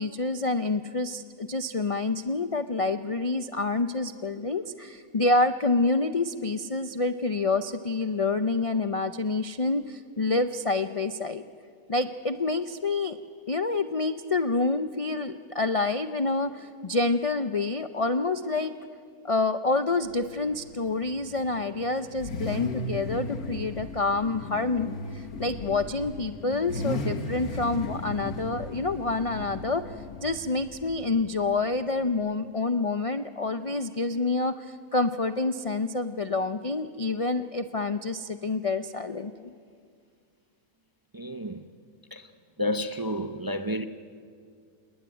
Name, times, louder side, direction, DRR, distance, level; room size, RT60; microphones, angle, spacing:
voice 1, 0.0-11.4 11.9-13.2 13.5-18.7 19.2-29.9 30.2-39.5, left 3 dB, 50° left, 0.4 m, -27 dB
Car / Idling / Accelerating revving vroom, 20.0-32.1, left 2 dB, 70° left, 2.1 m, -37 dB
voice 2, 41.1-41.6 42.1-42.3 42.6-43.8, left 1 dB, 25° right, 0.5 m, -30 dB
27.5 x 20.0 x 8.9 m
omnidirectional pair, 1.6 m